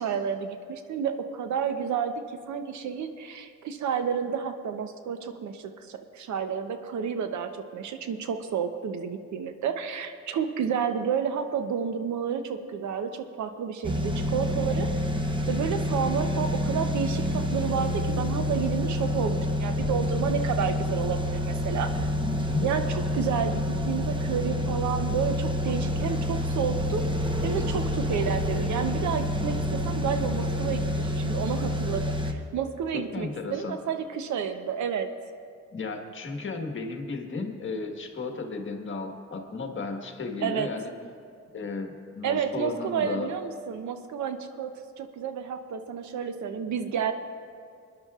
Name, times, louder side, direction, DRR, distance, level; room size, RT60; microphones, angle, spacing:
voice 1, 0.0-2.2 2.5-14.9 15.5-22.1 22.6-27.0 27.4-35.1 40.4-40.7 42.2-47.1, right 7 dB, 70° right, 8 dB, 0.8 m, -30 dB
sound 1, 13.8-32.3, left 1 dB, 15° right, 0.9 m, -28 dB
voice 2, 22.2-22.7 32.9-33.8 35.7-40.9 41.5-43.3, left 3 dB, 40° left, 3 dB, 1.5 m, -34 dB
23.0 x 10.5 x 2.4 m, 2.3 s
cardioid pair, 90°, 30 cm